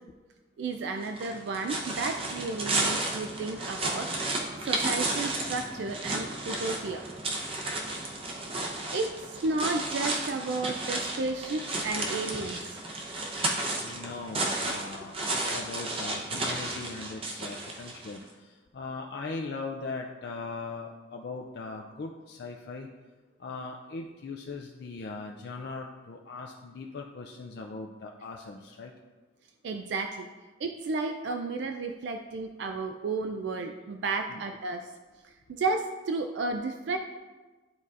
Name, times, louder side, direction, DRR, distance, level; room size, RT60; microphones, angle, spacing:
voice 1, 0.6-4.3 4.6-7.1 8.9-12.8 29.6-30.3 30.6-34.9 35.5-37.0, right 3 dB, 65° right, 5 dB, 0.3 m, -32 dB
sound 1, 1.0-18.2, right 2 dB, 30° right, 0.7 m, -33 dB
voice 2, 13.8-22.9 23.4-28.9 34.3-34.4, left 3 dB, 55° left, 1 dB, 0.4 m, -39 dB
11.0 x 4.0 x 2.5 m, 1.3 s
head